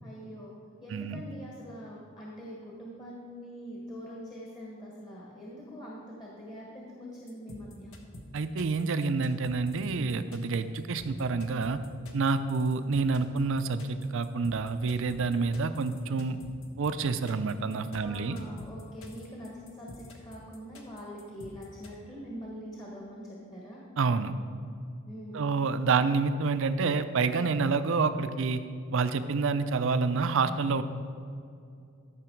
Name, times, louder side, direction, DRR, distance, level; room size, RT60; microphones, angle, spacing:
voice 1, 0.0-8.0 18.0-23.8 25.1-25.5, equal, 20° left, -4 dB, 1.3 m, -44 dB
voice 2, 0.9-1.2 8.3-11.8 12.1-16.4 16.8-18.4 24.0-24.3 25.3-28.6 28.9-30.8, right 4 dB, 65° right, 11 dB, 0.5 m, -28 dB
sound 1, 7.3-21.9, left 1 dB, 75° left, 1.3 m, -48 dB
13.5 x 5.9 x 4.6 m, 2.4 s
head